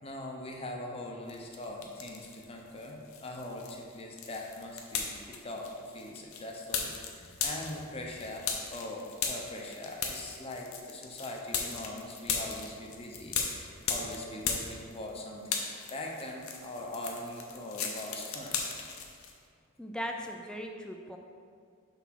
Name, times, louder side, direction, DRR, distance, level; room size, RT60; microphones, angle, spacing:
voice 1, 0.0-15.6 15.9-18.6, left 1 dB, 25° left, 0 dB, 0.7 m, -41 dB
sound 1, 1.3-2.4 2.8-15.2 15.4-19.3, left 6 dB, 75° left, 0.7 m, -37 dB
voice 2, 19.8-21.2, equal, 5° left, 3 dB, 0.3 m, -38 dB
6.0 x 3.5 x 5.8 m, 2.3 s
head